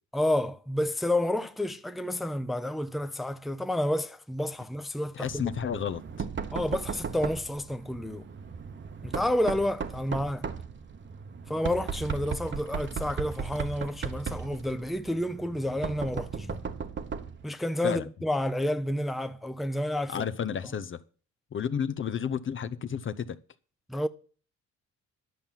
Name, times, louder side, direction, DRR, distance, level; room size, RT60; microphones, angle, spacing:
voice 1, 0.1-5.4 6.5-8.3 9.0-10.5 11.5-16.6 17.4-20.3 23.9-24.1, left 1 dB, ahead, 0.6 m, -30 dB
voice 2, 5.1-6.3 17.8-18.1 20.1-21.0 21.5-23.4, left 7 dB, 40° left, 0.7 m, -32 dB
Knock, 5.2-17.4, right 6 dB, 40° right, 1.0 m, -37 dB
11.0 x 5.6 x 7.4 m
cardioid pair, 90°, 30 cm